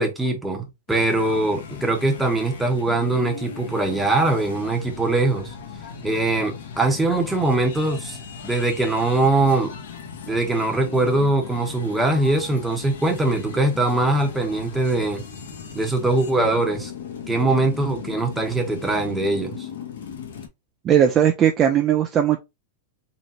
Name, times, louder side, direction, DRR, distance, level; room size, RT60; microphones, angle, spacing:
voice 1, 0.0-5.5 6.0-8.2 8.4-9.7 10.3-15.2 15.7-16.9 17.3-19.7, right 2 dB, 5° right, 0.9 m, -22 dB
sound 1, 0.9-20.5, left 6 dB, 80° left, 1.2 m, -37 dB
voice 2, 20.8-22.4, right 9 dB, 25° right, 0.5 m, -18 dB
4.0 x 3.2 x 2.8 m
supercardioid pair, 155°, 0 cm